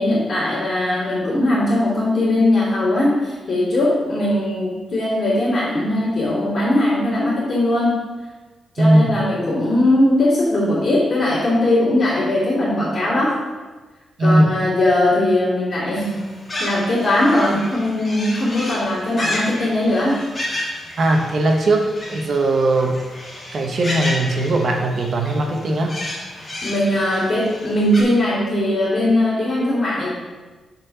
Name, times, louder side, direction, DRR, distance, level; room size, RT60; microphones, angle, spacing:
voice 1, 0.0-8.0 8.7-13.3 14.2-16.2 16.6-20.1 26.6-30.2, left 1 dB, 40° left, -10 dB, 2.5 m, -19 dB
voice 2, 8.8-9.1 14.2-14.5 21.0-23.0 23.5-26.0, right 1 dB, 45° right, 2 dB, 1.1 m, -18 dB
sound 1, 15.9-28.0, left 1 dB, 20° left, 1.8 m, -32 dB
6.6 x 4.4 x 6.0 m, 1.3 s
wide cardioid pair, 150°, 0 cm